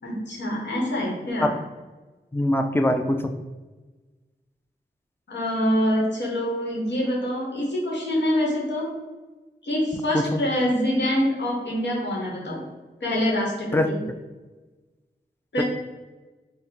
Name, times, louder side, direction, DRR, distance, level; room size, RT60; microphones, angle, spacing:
voice 1, 0.0-1.6 5.3-8.9 9.6-12.6 13.0-14.0 15.5-15.6, equal, 80° left, -3 dB, 1.2 m, -25 dB
voice 2, 2.3-3.3 10.1-10.3 13.7-13.9, left 1 dB, 10° left, 6 dB, 0.4 m, -22 dB
4.0 x 2.1 x 4.1 m, 1.2 s
cardioid pair, 45°, 18 cm